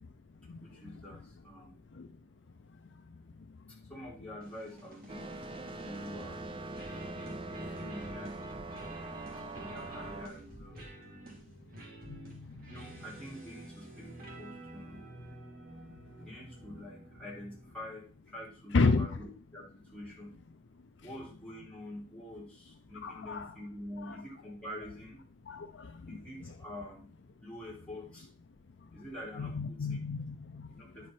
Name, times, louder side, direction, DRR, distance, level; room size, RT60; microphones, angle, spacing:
voice 1, 0.6-1.7 3.7-6.4 7.5-8.6 9.6-10.9 12.7-15.1 16.2-20.5 21.0-25.2 26.1-27.1 27.4-28.3 28.9-30.0 30.7-31.1, left 1 dB, 5° left, -4 dB, 2.7 m, -46 dB
sound 1, 4.4-17.9, right 1 dB, 45° right, 2.3 m, -50 dB
sound 2, 5.1-10.3, right 2 dB, 25° right, 0.4 m, -42 dB
voice 2, 12.1-12.5 18.7-19.1 23.0-23.5 25.5-25.9 29.4-30.6, left 4 dB, 60° left, 7 dB, 0.5 m, -30 dB
9.9 x 4.9 x 4.3 m, 0.38 s
head